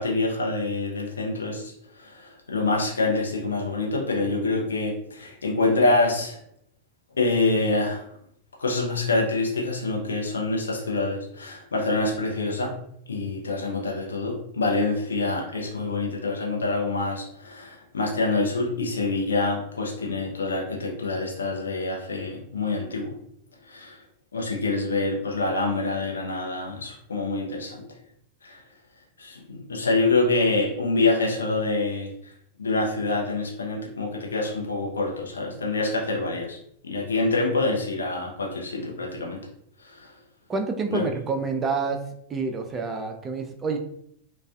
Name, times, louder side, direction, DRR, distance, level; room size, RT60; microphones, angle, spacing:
voice 1, 0.0-6.4 7.2-8.0 8.6-12.7 13.1-23.1 23.7-24.0 24.3-27.8 28.4-28.6 29.2-32.1 32.6-36.6 36.8-39.4 39.8-40.1 40.9-41.0, left 3 dB, 70° left, -1 dB, 0.6 m, -26 dB
voice 2, 40.5-42.0 42.3-43.8, right 4 dB, 20° right, 4 dB, 0.3 m, -28 dB
2.3 x 2.2 x 2.3 m, 0.69 s
figure-of-eight pair, 90°, 0 cm